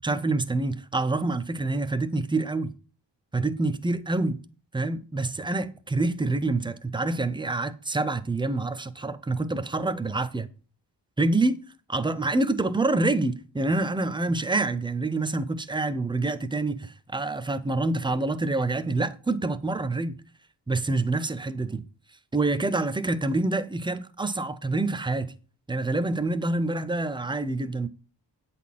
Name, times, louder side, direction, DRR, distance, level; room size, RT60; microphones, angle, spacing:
voice 1, 0.0-2.7 3.3-4.4 4.7-10.5 11.2-11.6 11.9-20.1 20.7-21.8 22.3-25.3 25.7-27.9, right 2 dB, 10° right, 0.5 m, -27 dB
8.8 x 4.2 x 7.3 m
wide cardioid pair, 170°, 44 cm